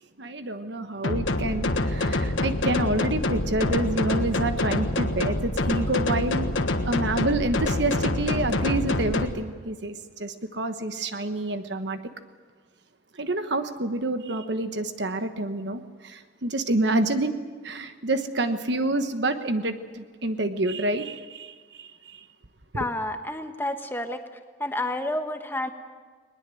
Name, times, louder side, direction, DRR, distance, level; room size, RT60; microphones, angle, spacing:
voice 1, 0.2-6.5 6.8-12.0 13.1-17.4 17.6-22.2, right 2 dB, 60° right, 9 dB, 1.3 m, -28 dB
sound 1, 1.0-9.2, left 2 dB, 75° left, 1.4 m, -26 dB
voice 2, 22.7-24.2 24.6-25.7, left 1 dB, 10° left, 6 dB, 1.3 m, -29 dB
20.5 x 20.5 x 7.8 m, 1.5 s
head